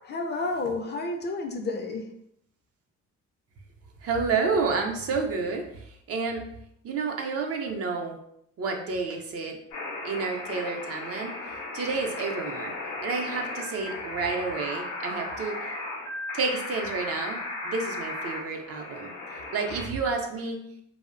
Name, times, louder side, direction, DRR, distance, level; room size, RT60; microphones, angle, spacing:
voice 1, 0.0-2.1, left 3 dB, 35° left, 3 dB, 0.4 m, -31 dB
voice 2, 4.0-6.5 6.8-8.2 8.6-9.6 10.0-11.3 11.7-12.7 13.0-15.6 16.3-19.1 19.5-20.6, right 4 dB, 50° right, 2 dB, 0.5 m, -30 dB
sound 1, 9.7-19.9, left 2 dB, 85° left, 0.6 m, -36 dB
2.5 x 2.0 x 2.4 m, 0.74 s
cardioid pair, 90°, 30 cm